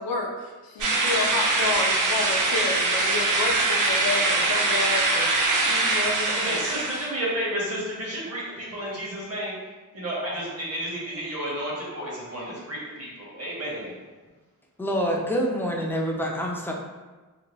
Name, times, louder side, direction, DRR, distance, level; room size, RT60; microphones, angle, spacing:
voice 1, 0.0-6.8, left 3 dB, 80° left, 0 dB, 0.6 m, -30 dB
sound 1, 0.8-7.1, right 2 dB, 60° right, 0.5 m, -23 dB
voice 2, 6.3-9.5 9.9-13.1 13.3-13.9, right 1 dB, 45° right, -5 dB, 1.0 m, -31 dB
voice 3, 14.8-16.7, equal, 5° left, -1 dB, 0.3 m, -26 dB
2.7 x 2.2 x 3.0 m, 1.3 s
wide cardioid pair, 100°, 35 cm